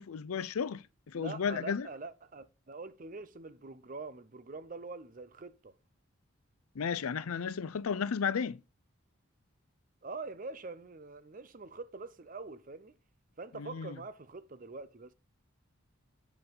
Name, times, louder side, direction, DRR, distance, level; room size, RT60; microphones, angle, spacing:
voice 1, 0.0-1.9 6.8-8.6 13.6-13.9, left 6 dB, 85° left, 0.5 m, -34 dB
voice 2, 1.1-5.8 10.0-13.0 13.4-15.1, right 3 dB, 40° right, 0.5 m, -44 dB
8.0 x 5.3 x 5.4 m
head